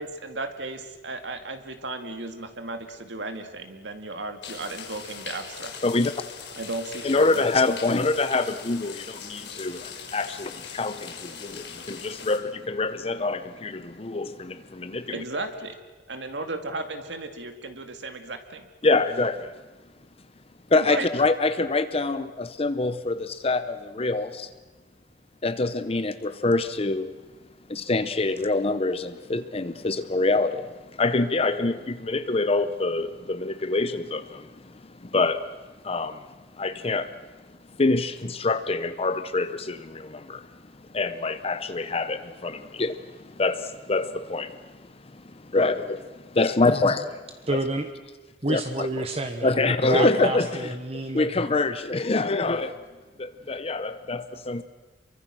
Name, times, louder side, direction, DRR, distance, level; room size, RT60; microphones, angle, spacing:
voice 1, 0.0-5.8 6.6-7.5 15.1-15.8 16.1-18.7 20.7-21.1, right 2 dB, 75° right, 7 dB, 2.2 m, -35 dB
sound 1, 4.4-12.4, left 6 dB, 70° left, 5.5 m, -40 dB
voice 2, 7.0-8.9 9.3-9.7 10.1-10.5 10.8-10.9 12.0-12.4 12.7-13.7 14.0-14.3 18.8-19.3 20.7-23.2 23.4-23.6 24.0-24.3 25.4-27.1 27.9-30.5 31.0-31.7 32.1-33.1 33.4-34.2 35.1-35.4 35.9-36.1 36.6-37.0 37.8-38.1 38.4-39.7 40.9-42.2 42.4-42.5 42.8-42.9 43.4-43.5 43.9-44.5 45.5-45.8 46.4-47.0 47.5-47.6 48.5-48.6 49.4-50.5 51.1-52.7 53.5-54.6, left 3 dB, 35° left, 11 dB, 0.8 m, -24 dB
voice 3, 47.5-47.9 48.4-51.3, right 2 dB, 35° right, 7 dB, 1.2 m, -29 dB
27.5 x 23.5 x 6.3 m, 1.3 s
head